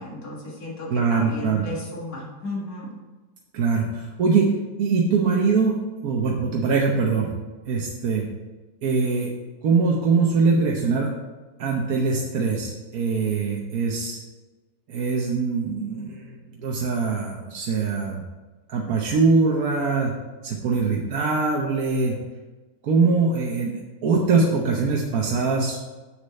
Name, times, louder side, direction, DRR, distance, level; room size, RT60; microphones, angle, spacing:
voice 1, 0.0-2.9, left 2 dB, 65° left, -3 dB, 2.0 m, -34 dB
voice 2, 0.9-1.6 3.5-5.8 6.0-7.3 7.7-8.2 8.8-9.3 9.6-11.1 11.6-14.2 14.9-18.2 18.7-20.1 20.4-22.1 22.8-25.8, right 4 dB, 70° right, -1 dB, 1.3 m, -22 dB
8.0 x 6.5 x 4.2 m, 1.3 s
omnidirectional pair, 1.6 m